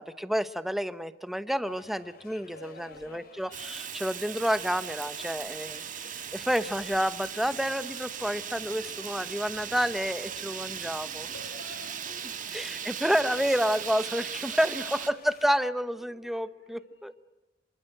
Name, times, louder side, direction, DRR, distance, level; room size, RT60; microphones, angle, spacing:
voice 1, 0.0-11.3 12.5-17.1, equal, ahead, 13 dB, 0.9 m, -29 dB
sound 1, 1.7-15.6, left 4 dB, 50° left, 2.7 m, -54 dB
voice 2, 2.5-3.2 5.2-5.3 11.0-12.7 14.5-15.4 15.9-17.2, left 1 dB, 80° left, 6 dB, 6.3 m, -50 dB
Fire, 3.5-15.1, right 8 dB, 45° right, 1.7 m, -38 dB
28.0 x 24.5 x 7.8 m, 1.0 s
head